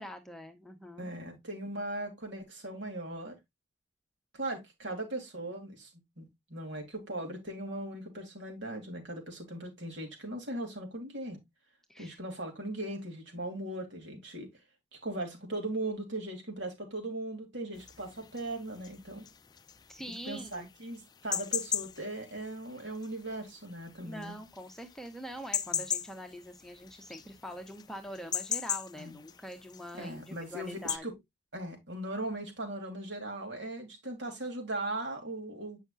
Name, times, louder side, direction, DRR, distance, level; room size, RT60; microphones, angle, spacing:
voice 1, 0.0-1.1 4.9-5.0 11.9-12.2 19.9-20.7 24.0-31.1, equal, ahead, 0.9 m, -44 dB
voice 2, 1.0-3.4 4.3-5.9 6.2-11.4 12.0-14.5 15.0-19.3 20.3-24.3 25.7-25.8 29.0-29.2 30.0-31.1 31.5-35.8, right 1 dB, 75° right, 2.8 m, -38 dB
sound 1, 17.8-31.0, left 8 dB, 20° left, 0.3 m, -38 dB
8.7 x 5.6 x 2.5 m
head